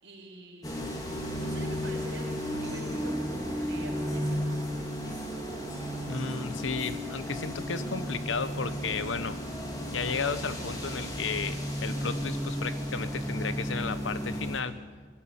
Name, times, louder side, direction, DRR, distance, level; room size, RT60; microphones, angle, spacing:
voice 1, 0.0-0.7 1.3-4.7, right 2 dB, 75° right, 1 dB, 4.7 m, -46 dB
sound 1, 0.6-14.6, equal, 20° left, 3.0 m, -34 dB
voice 2, 6.1-9.4 9.9-14.8, left 5 dB, 90° left, 12 dB, 1.1 m, -33 dB
21.0 x 12.5 x 9.7 m, 1.5 s
head